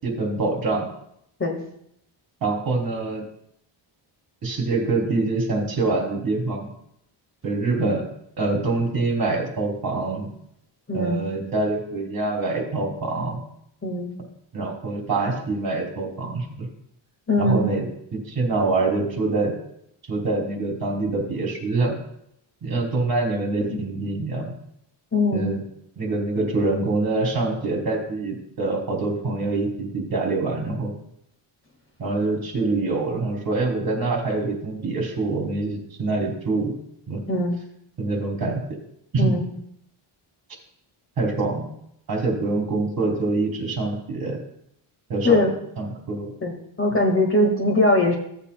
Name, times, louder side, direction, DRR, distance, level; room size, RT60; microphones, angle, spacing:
voice 1, 0.0-0.9 2.4-3.2 4.4-6.7 7.4-8.0 8.4-10.3 10.9-13.4 14.5-16.7 17.4-17.8 18.1-19.5 20.1-22.0 22.6-24.5 25.3-25.6 26.0-30.9 32.0-36.7 37.1-37.2 38.0-38.8 39.1-39.3 41.2-41.7 42.1-44.4 45.1-45.4 45.8-46.3, right 3 dB, 45° right, 0 dB, 2.9 m, -25 dB
voice 2, 10.9-11.2 13.8-14.1 17.3-17.7 23.7-23.8 25.1-25.5 37.3-37.6 39.2-39.5 45.2-45.5 46.4-48.1, left 1 dB, 25° left, 1 dB, 1.7 m, -21 dB
16.0 x 8.3 x 2.2 m, 0.73 s
wide cardioid pair, 145°, 50 cm